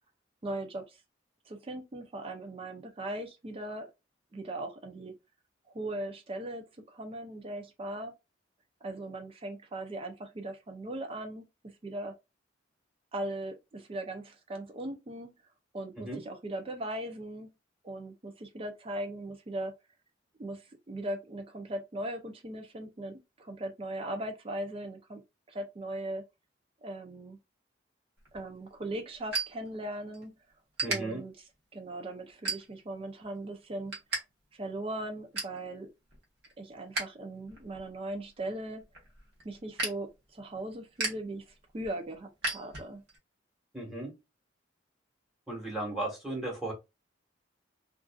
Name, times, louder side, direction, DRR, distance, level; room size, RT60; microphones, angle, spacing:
voice 1, 0.4-1.0 1.5-3.9 4.3-5.1 5.7-8.1 8.8-12.1 13.1-15.3 15.7-17.5 17.8-19.7 20.4-25.2 25.5-26.2 26.8-27.4 28.3-30.3 30.9-31.3 31.7-33.9 34.5-35.9 36.6-38.8 39.4-43.0, right 1 dB, 30° right, 0.4 m, -39 dB
sound 1, 28.2-30.2 30.5-31.0 31.5-31.8 32.3-33.0 33.4-34.2 34.5-34.6 35.0-35.6 36.1-37.0 37.4-43.2, right 2 dB, 60° right, 1.1 m, -37 dB
voice 2, 30.8-31.2 43.7-44.1 45.5-46.7, right 2 dB, ahead, 1.3 m, -35 dB
2.5 x 2.4 x 2.3 m
head